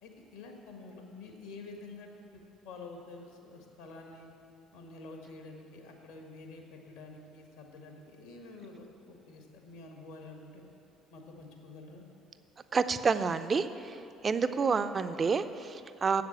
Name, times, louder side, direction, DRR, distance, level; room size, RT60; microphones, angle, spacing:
voice 1, 0.0-4.3 4.7-10.6 11.1-12.0, left 3 dB, 75° left, 2 dB, 1.4 m, -48 dB
voice 2, 12.7-14.0 14.2-16.2, right 5 dB, 35° right, 11 dB, 0.4 m, -29 dB
7.8 x 6.8 x 7.9 m, 2.8 s
figure-of-eight pair, 55°, 0 cm